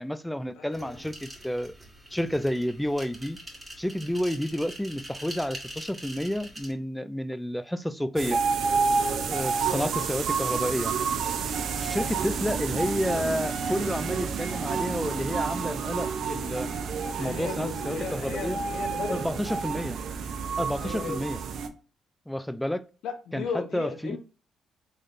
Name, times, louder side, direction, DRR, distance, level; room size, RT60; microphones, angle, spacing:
voice 1, 0.0-1.7 2.1-3.4 3.8-8.4 9.2-10.9 11.8-16.7 17.2-18.6 19.1-20.0 20.6-21.4 22.3-22.8 23.3-23.4 23.7-24.2, equal, 5° left, 0.3 m, -30 dB
voice 2, 0.5-1.0 9.6-9.9 17.2-19.4 20.8-21.2 23.0-24.2, left 5 dB, 85° left, 1.0 m, -36 dB
sound 1, 0.7-6.7, right 1 dB, 15° right, 1.4 m, -44 dB
sound 2, 8.2-21.7, right 5 dB, 70° right, 0.5 m, -29 dB
3.9 x 3.3 x 2.6 m
cardioid pair, 90°, 0 cm